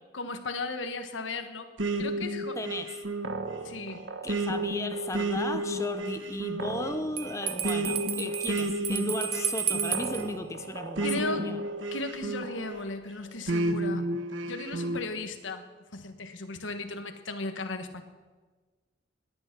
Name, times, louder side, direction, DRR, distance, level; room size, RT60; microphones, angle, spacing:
voice 1, 0.1-1.7 2.0-2.6 3.6-4.0 11.0-11.5 11.9-14.1 14.4-15.6 15.9-18.0, left 3 dB, 90° left, 1.4 m, -36 dB
sound 1, 1.8-12.8 13.5-15.0, right 2 dB, 85° right, 1.3 m, -32 dB
voice 2, 2.6-3.0 4.2-11.1 11.4-11.6, left 2 dB, 15° left, 0.6 m, -35 dB
Bell, 7.2-10.3, right 8 dB, 30° right, 0.8 m, -32 dB
18.0 x 10.5 x 6.0 m
head